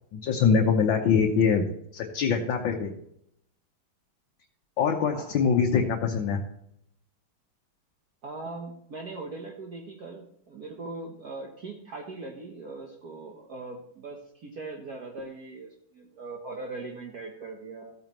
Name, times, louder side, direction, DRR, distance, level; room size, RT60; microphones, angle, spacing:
voice 1, 0.1-1.6 1.9-2.9 4.8-6.4, left 6 dB, 65° left, 2 dB, 1.7 m, -23 dB
voice 2, 8.2-17.9, right 3 dB, 50° right, 0 dB, 1.5 m, -40 dB
14.5 x 8.8 x 3.1 m, 0.74 s
omnidirectional pair, 2.3 m